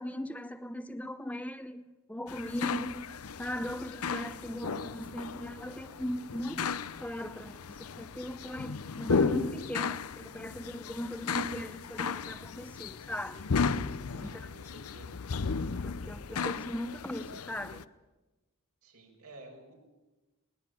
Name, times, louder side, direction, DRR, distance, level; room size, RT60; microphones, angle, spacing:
voice 1, 0.0-1.8 2.1-3.1 3.4-13.5 14.1-14.5 15.8-17.9, left 1 dB, 5° left, 0.7 m, -39 dB
sound 1, 2.3-17.8, left 5 dB, 80° left, 0.7 m, -35 dB
voice 2, 14.2-15.2 18.8-19.7, right 2 dB, 80° right, 6.4 m, -52 dB
21.0 x 19.5 x 8.6 m
head